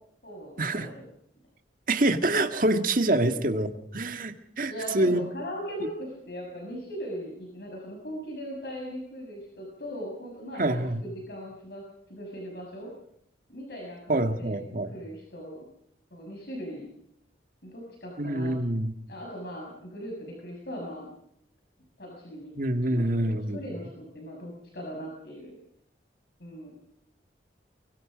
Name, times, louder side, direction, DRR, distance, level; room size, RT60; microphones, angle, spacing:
voice 1, 0.2-1.0 4.7-11.8 12.1-12.9 13.5-15.6 16.1-16.8 17.6-18.8 19.1-21.1 22.0-22.5 22.9-25.5 26.4-26.8, equal, 60° left, 0 dB, 6.5 m, -39 dB
voice 2, 1.9-5.2 10.6-11.0 14.1-14.9 18.2-18.9 22.6-23.6, right 1 dB, 50° right, 7 dB, 1.8 m, -26 dB
24.0 x 23.5 x 5.1 m, 0.73 s
head